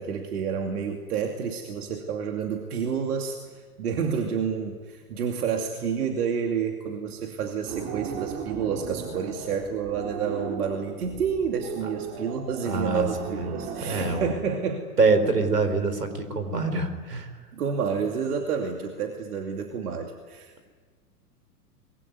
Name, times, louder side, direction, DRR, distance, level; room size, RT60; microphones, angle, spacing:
voice 1, 0.0-14.9 17.5-20.7, right 6 dB, 70° right, 3 dB, 2.8 m, -29 dB
sound 1, 7.7-14.3, right 7 dB, 50° right, 3.7 m, -36 dB
voice 2, 12.7-13.1 13.3-13.5 13.8-14.3 15.0-17.3, right 3 dB, 90° right, 9 dB, 4.3 m, -25 dB
25.0 x 22.0 x 9.6 m, 1.6 s
hypercardioid pair, 100°, 46 cm